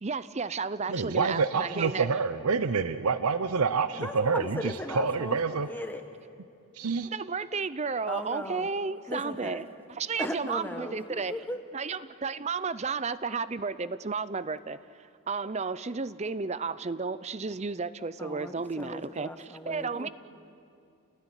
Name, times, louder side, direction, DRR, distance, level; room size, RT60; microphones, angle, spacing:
voice 1, 0.0-2.1 6.8-9.6 10.0-11.3 11.7-14.8 15.3-19.3 19.7-20.1, right 4 dB, 30° right, 16 dB, 0.5 m, -32 dB
voice 2, 0.9-4.4 4.9-5.7 6.8-7.1, right 5 dB, 85° right, 11 dB, 0.8 m, -27 dB
voice 3, 3.9-5.4 5.7-6.1 8.0-8.8 9.1-9.6 10.2-11.6 18.2-20.1, left 1 dB, 10° left, 6 dB, 1.5 m, -37 dB
29.5 x 19.0 x 9.9 m, 2.5 s
head